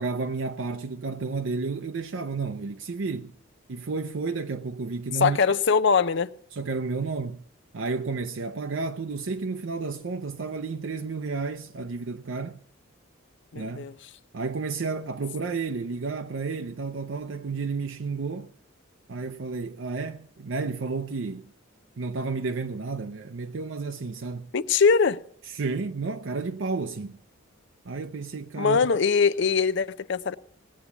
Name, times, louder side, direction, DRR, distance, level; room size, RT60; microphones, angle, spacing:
voice 1, 0.0-3.3 3.7-5.4 6.5-7.4 7.7-12.6 13.5-13.9 14.3-18.5 19.1-21.5 22.0-24.5 25.5-27.2 27.8-28.8, right 4 dB, 65° right, 0.6 m, -31 dB
voice 2, 5.1-6.3 13.5-13.9 24.5-25.2 28.6-30.3, left 5 dB, 60° left, 0.6 m, -22 dB
18.0 x 8.4 x 7.0 m
head